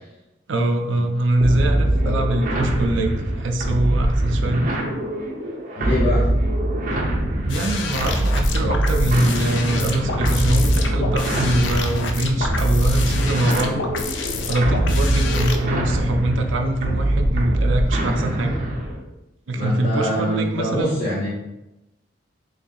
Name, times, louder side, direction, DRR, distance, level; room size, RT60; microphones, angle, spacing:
voice 1, 0.5-4.7 7.4-13.8 14.3-18.5 19.5-21.0, right 1 dB, 85° right, 4 dB, 0.5 m, -23 dB
sound 1, 1.4-19.0, right 1 dB, 45° right, 0.7 m, -23 dB
voice 2, 5.7-6.3 19.5-21.3, equal, 35° left, -13 dB, 1.2 m, -24 dB
sound 2, 7.5-15.6, left 4 dB, 75° left, 0.4 m, -28 dB
3.4 x 2.7 x 3.9 m, 0.94 s
head